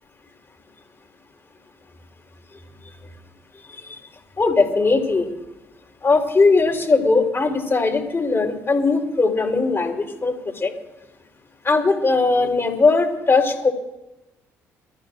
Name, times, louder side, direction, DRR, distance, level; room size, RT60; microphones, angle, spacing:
voice 1, 4.4-5.3 6.0-10.7 11.6-13.7, left 3 dB, 30° left, 1 dB, 4.5 m, -19 dB
27.5 x 14.5 x 2.7 m, 0.99 s
hypercardioid pair, 50°, 8 cm